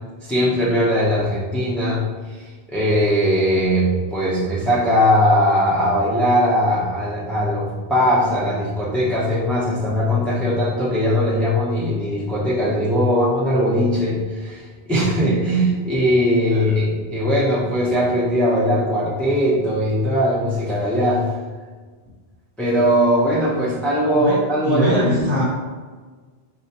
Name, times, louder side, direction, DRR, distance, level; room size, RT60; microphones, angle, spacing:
voice 1, 0.2-2.0 2.4-21.3 22.6-25.4, equal, ahead, -8 dB, 0.3 m, -20 dB
voice 2, 16.5-16.8 24.1-25.4, equal, 70° right, -6 dB, 1.1 m, -23 dB
4.3 x 2.1 x 2.7 m, 1.4 s
omnidirectional pair, 1.1 m